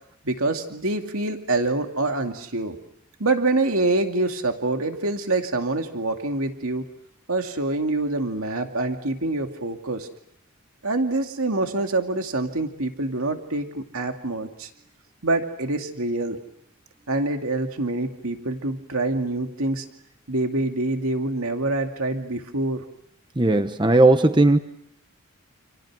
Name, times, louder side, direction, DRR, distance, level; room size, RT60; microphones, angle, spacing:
voice 1, 0.2-2.8 3.2-6.9 7.3-10.1 10.8-14.7 15.2-16.4 17.1-19.8 20.3-22.8, right 2 dB, 75° right, 4 dB, 2.4 m, -25 dB
voice 2, 23.4-24.6, right 2 dB, 20° right, 9 dB, 1.0 m, -17 dB
29.5 x 29.0 x 6.2 m, 0.74 s
head